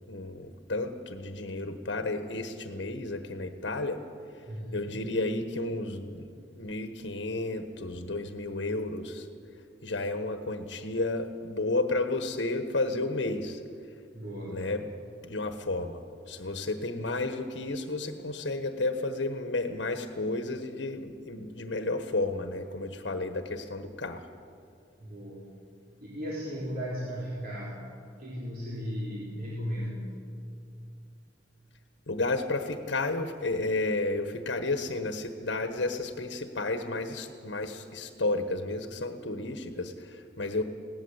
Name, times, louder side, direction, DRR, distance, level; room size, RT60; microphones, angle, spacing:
voice 1, 0.1-4.0 4.3-4.4 4.7-6.3 6.6-9.3 9.8-13.9 14.5-14.8 15.2-24.2 32.1-40.6, left 2 dB, 70° left, 8 dB, 1.3 m, -32 dB
voice 2, 4.5-5.0 14.1-14.6 25.0-25.4 26.0-27.9 28.2-30.1, equal, 55° right, -6 dB, 3.9 m, -36 dB
20.5 x 17.5 x 8.1 m, 2.5 s
head